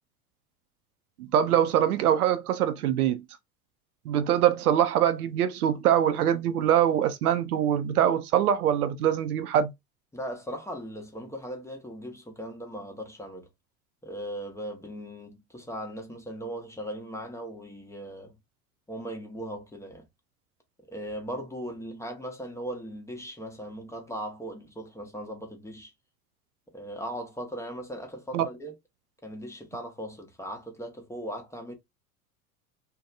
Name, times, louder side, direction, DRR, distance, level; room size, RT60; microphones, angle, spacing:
voice 1, 1.2-3.2 4.1-9.7 28.3-28.5, right 10 dB, 80° right, 0.6 m, -23 dB
voice 2, 10.1-13.5 14.0-18.4 18.9-20.1 20.9-25.9 26.7-28.7 29.2-31.7, equal, 5° left, 0.8 m, -38 dB
2.7 x 2.2 x 2.5 m
hypercardioid pair, 75°, 44 cm